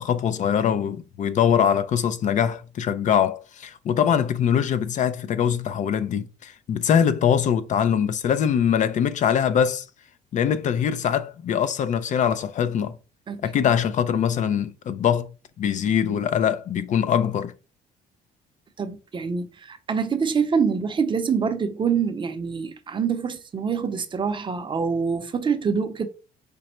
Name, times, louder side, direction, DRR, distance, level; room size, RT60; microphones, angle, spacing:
voice 1, 0.0-9.8 10.3-12.9 13.4-15.3 15.6-17.5, left 8 dB, 50° left, 0.4 m, -22 dB
voice 2, 18.8-26.1, right 6 dB, 30° right, 0.6 m, -25 dB
5.2 x 2.1 x 4.2 m
cardioid pair, 110°, 17 cm